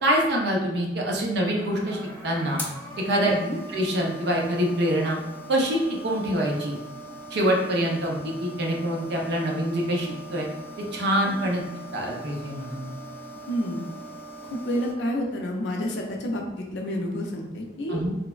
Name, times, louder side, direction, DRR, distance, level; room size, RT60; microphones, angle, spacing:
voice 1, 0.0-2.6 3.0-3.3 3.7-5.2 5.5-6.8 7.3-10.5 10.9-11.6 11.9-12.8 17.9-18.2, equal, 65° right, -1 dB, 0.5 m, -25 dB
sound 1, 1.4-14.9, right 1 dB, 10° left, 0.4 m, -41 dB
voice 2, 3.2-3.6 11.2-11.4 13.5-13.8 14.5-18.0, equal, 70° left, 0 dB, 0.5 m, -29 dB
3.1 x 2.0 x 2.3 m, 1.1 s
head